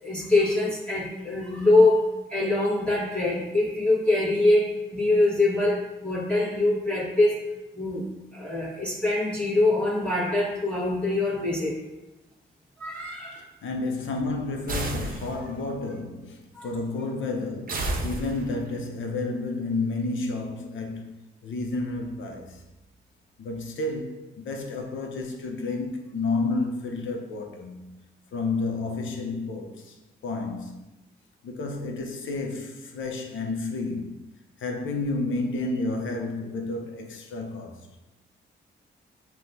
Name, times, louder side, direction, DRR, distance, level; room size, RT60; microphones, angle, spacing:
voice 1, 0.0-2.0 2.3-7.3 7.7-11.8 12.8-13.4 16.5-16.7, left 2 dB, 5° left, 1.2 m, -24 dB
voice 2, 13.3-22.6 23.4-27.9 28.3-30.0 30.2-30.9 31.4-34.3 34.6-37.8, left 3 dB, 70° left, 0.6 m, -31 dB
sound 1, 14.7-15.7 17.7-18.8, right 1 dB, 45° right, 0.6 m, -31 dB
5.8 x 2.2 x 2.7 m
supercardioid pair, 45°, 21 cm